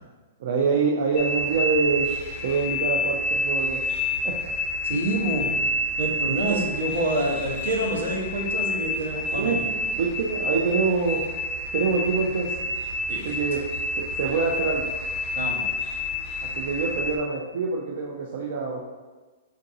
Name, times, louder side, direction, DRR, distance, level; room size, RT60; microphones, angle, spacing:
voice 1, 0.4-2.1 2.4-3.8 4.2-4.4 6.3-6.6 9.3-9.6 9.9-11.2 11.7-12.6 13.2-13.6 14.0-14.9 16.4-18.9, right 4 dB, 50° right, -1 dB, 0.4 m, -25 dB
sound 1, 1.2-17.2, left 1 dB, 15° left, 0.5 m, -29 dB
voice 2, 4.8-5.6 6.0-9.7 13.1-13.3 15.4-15.6, right 2 dB, 80° right, -1 dB, 0.9 m, -27 dB
4.7 x 2.5 x 2.6 m, 1.3 s
hypercardioid pair, 170°, 0 cm